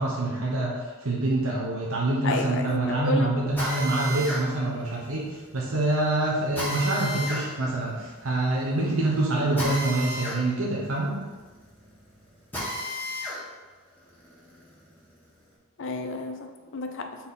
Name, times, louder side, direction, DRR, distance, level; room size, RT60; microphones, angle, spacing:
voice 1, 0.0-11.2, right 2 dB, 90° right, -4 dB, 1.0 m, -26 dB
voice 2, 2.2-3.3 15.8-17.1, left 2 dB, 65° left, 5 dB, 0.6 m, -31 dB
Drill, 3.6-13.4 13.8-15.5, left 1 dB, 10° left, 1.6 m, -35 dB
4.3 x 4.2 x 5.3 m, 1.3 s
head